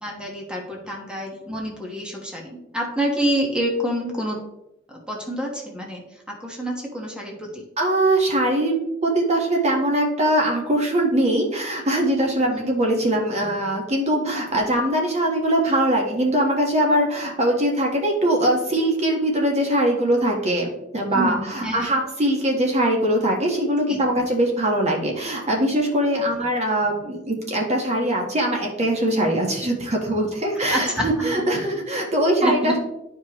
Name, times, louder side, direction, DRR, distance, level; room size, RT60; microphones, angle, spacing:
voice 1, 0.0-4.4 5.1-6.0 6.3-7.6 12.4-12.7 21.1-21.9 23.9-24.0 30.7-31.5 32.4-32.8, equal, 5° right, -1 dB, 1.3 m, -27 dB
voice 2, 7.8-8.7 9.0-20.7 20.9-32.8, right 1 dB, 35° right, 0 dB, 1.3 m, -22 dB
11.5 x 4.9 x 3.0 m, 0.89 s
head